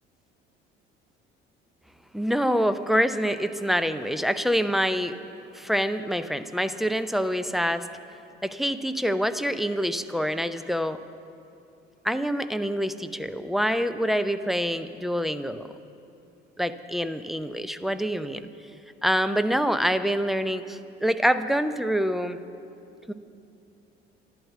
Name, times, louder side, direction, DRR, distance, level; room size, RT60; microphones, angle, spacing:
voice 1, 2.1-5.1 5.5-7.9 8.4-11.0 12.0-15.7 16.6-18.5 19.0-22.4 23.1-23.2, equal, ahead, 10 dB, 0.6 m, -26 dB
12.0 x 12.0 x 8.1 m, 2.7 s
figure-of-eight pair, 55°, 31 cm